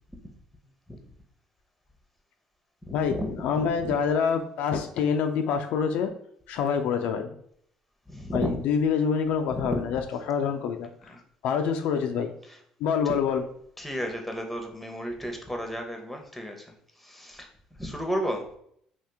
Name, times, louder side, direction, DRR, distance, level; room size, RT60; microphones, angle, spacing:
voice 1, 2.8-3.9 8.1-8.6 9.5-9.8 11.1-11.2 12.5-12.6 13.0-13.1 13.8-17.5 17.8-18.4, equal, 5° left, 3 dB, 0.7 m, -33 dB
voice 2, 3.4-6.1 6.5-7.4 8.3-10.0 10.3-11.1 11.4-12.3 12.8-13.4, left 6 dB, 70° left, 6 dB, 0.3 m, -26 dB
2.8 x 2.4 x 3.4 m, 0.68 s
supercardioid pair, 80°, 2 cm